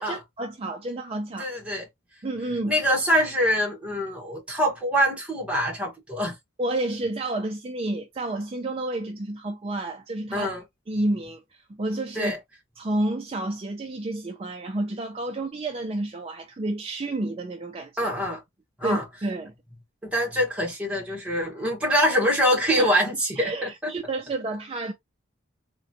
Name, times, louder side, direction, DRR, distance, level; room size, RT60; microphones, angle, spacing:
voice 1, 0.0-1.5 2.2-2.8 6.6-10.5 10.9-12.3 12.8-18.1 18.8-19.5 22.8-23.0 23.4-24.9, right 2 dB, 30° right, 0.4 m, -30 dB
voice 2, 1.4-1.9 2.7-6.3 10.3-10.6 12.2-12.4 18.0-18.4 18.8-19.0 20.0-23.9, equal, 5° right, 1.0 m, -24 dB
3.7 x 2.2 x 2.6 m
head